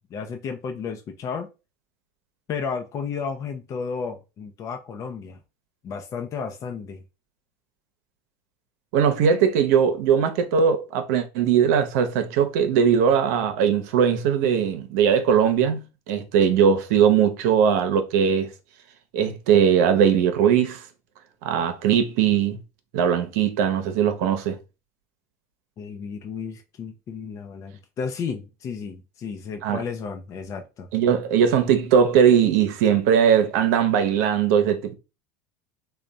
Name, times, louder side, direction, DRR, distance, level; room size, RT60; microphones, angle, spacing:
voice 1, 0.1-1.5 2.5-5.4 5.8-7.0 25.8-30.9, left 6 dB, 40° left, 0.6 m, -33 dB
voice 2, 8.9-18.5 19.1-20.8 21.4-22.6 22.9-24.6 29.6-29.8 30.9-34.9, right 8 dB, 75° right, 0.7 m, -20 dB
3.3 x 2.3 x 3.9 m
supercardioid pair, 115°, 9 cm